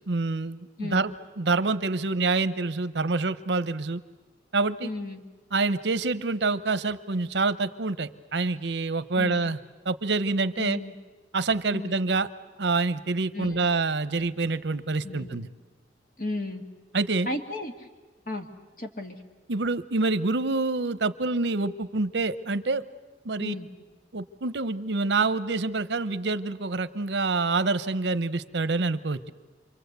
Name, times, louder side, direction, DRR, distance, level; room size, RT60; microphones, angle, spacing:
voice 1, 0.1-4.0 4.5-4.9 5.5-9.6 9.8-10.8 11.3-12.3 12.6-15.5 16.9-17.3 19.5-22.8 23.2-23.5 24.1-29.3, right 3 dB, 80° right, 14 dB, 0.8 m, -27 dB
voice 2, 4.8-5.2 9.2-9.4 10.6-10.9 11.7-11.9 13.3-13.7 15.0-15.4 16.2-16.6 17.3-17.7 18.3-18.5 18.8-19.2 23.4-23.7, left 1 dB, 50° left, 4 dB, 2.1 m, -34 dB
28.0 x 23.5 x 8.1 m, 1.2 s
head